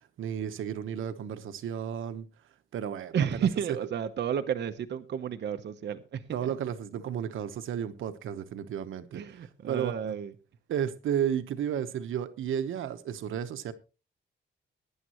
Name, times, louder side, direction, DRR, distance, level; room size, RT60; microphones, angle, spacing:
voice 1, 0.2-2.3 2.7-3.3 6.3-9.2 9.7-10.1 10.7-13.7, right 9 dB, 85° right, 1.1 m, -33 dB
voice 2, 3.1-6.5 9.1-10.3, right 8 dB, 60° right, 0.9 m, -32 dB
17.5 x 10.5 x 3.0 m
cardioid pair, 115°, 20 cm